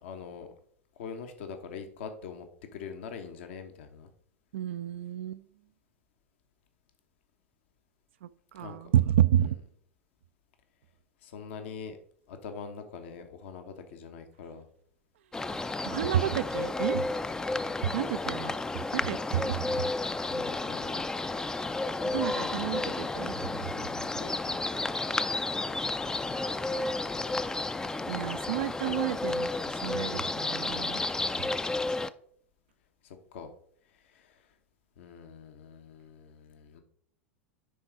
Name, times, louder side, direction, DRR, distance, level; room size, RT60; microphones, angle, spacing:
voice 1, 0.0-0.5 1.0-2.5 2.7-4.1 8.6-8.9 11.2-12.0 12.3-14.6 17.7-17.9 20.2-21.1 22.1-23.0 23.6-24.6 28.8-29.1 33.0-33.5 33.9-34.5 35.0-36.8, left 6 dB, 65° left, 7 dB, 1.1 m, -44 dB
voice 2, 4.5-5.5 8.2-9.6 15.8-17.1 17.8-19.9 22.1-23.7 28.1-31.0, right 11 dB, 65° right, 14 dB, 0.4 m, -30 dB
sound 1, 15.3-32.1, left 2 dB, 10° left, 0.4 m, -32 dB
10.0 x 4.0 x 4.6 m, 0.62 s
hypercardioid pair, 90°, 7 cm